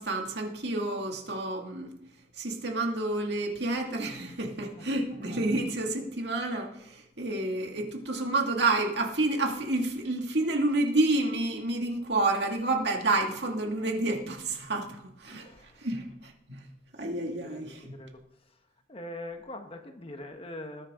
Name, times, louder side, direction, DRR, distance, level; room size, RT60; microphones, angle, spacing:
voice 1, 0.0-1.9 2.4-15.5 15.8-16.6 17.0-17.9, right 2 dB, 65° right, 2 dB, 2.4 m, -29 dB
voice 2, 15.3-15.9 17.4-18.6 18.9-20.9, left 1 dB, 30° left, 5 dB, 1.3 m, -43 dB
20.5 x 9.7 x 3.8 m, 0.78 s
head